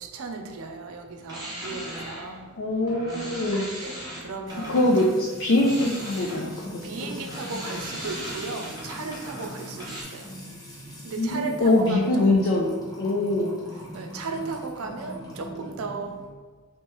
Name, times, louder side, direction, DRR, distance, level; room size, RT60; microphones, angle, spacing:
voice 1, 0.0-2.5 3.8-5.1 6.5-10.3 11.0-12.2 13.9-16.2, right 4 dB, 70° right, 4 dB, 0.5 m, -36 dB
sound 1, 1.2-5.1 5.5-10.0, right 1 dB, 20° right, 1.0 m, -38 dB
voice 2, 2.6-3.7 4.7-6.5 7.0-7.1 11.2-13.5, left 1 dB, 55° left, -2 dB, 0.4 m, -23 dB
Music / Water tap faucet / Trickle dribble, 4.5-16.2, left 1 dB, 15° left, 0.6 m, -42 dB
3.2 x 3.0 x 3.1 m, 1.4 s
head